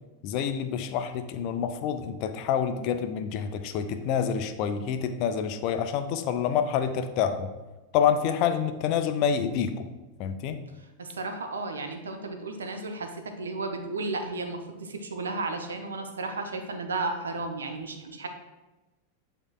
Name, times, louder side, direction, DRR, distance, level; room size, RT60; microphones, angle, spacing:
voice 1, 0.2-7.5 7.9-9.9 10.2-10.6, left 8 dB, 45° left, 8 dB, 0.4 m, -27 dB
voice 2, 11.0-18.3, right 3 dB, 70° right, 5 dB, 0.5 m, -33 dB
7.8 x 2.9 x 2.3 m, 1.1 s
figure-of-eight pair, 90°, 0 cm